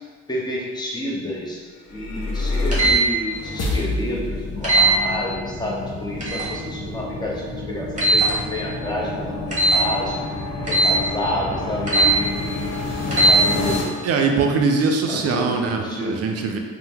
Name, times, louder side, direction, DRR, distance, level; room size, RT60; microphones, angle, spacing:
voice 1, 0.3-1.6 1.9-10.2 10.6-12.8 13.3-13.9 15.1-16.2, left 1 dB, 15° left, -4 dB, 0.7 m, -29 dB
sound 1, 1.8-13.8, left 2 dB, 55° left, 0.6 m, -28 dB
sound 2, 2.7-3.0 4.6-4.9 6.2-6.5 8.0-8.3 9.5-9.8 10.7-11.0 11.9-12.2 13.1-13.4, right 2 dB, 25° right, 0.9 m, -17 dB
voice 2, 14.0-16.6, right 4 dB, 55° right, 3 dB, 0.4 m, -21 dB
2.7 x 2.0 x 3.4 m, 1.5 s
cardioid pair, 90°, 30 cm